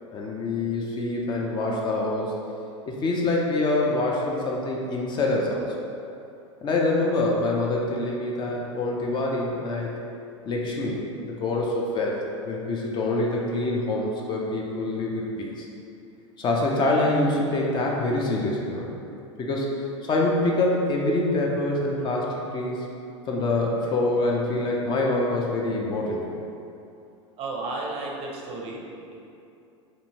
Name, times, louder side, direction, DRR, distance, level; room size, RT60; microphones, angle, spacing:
voice 1, 0.1-2.3 2.9-5.7 6.6-9.9 10.5-15.7 16.4-18.9 19.4-19.7 20.0-22.9 23.3-26.3, left 2 dB, 30° left, -2 dB, 0.4 m, -25 dB
voice 2, 27.4-29.2, right 2 dB, 40° right, -1 dB, 0.5 m, -33 dB
2.7 x 2.6 x 2.8 m, 2.6 s
hypercardioid pair, 90°, 16 cm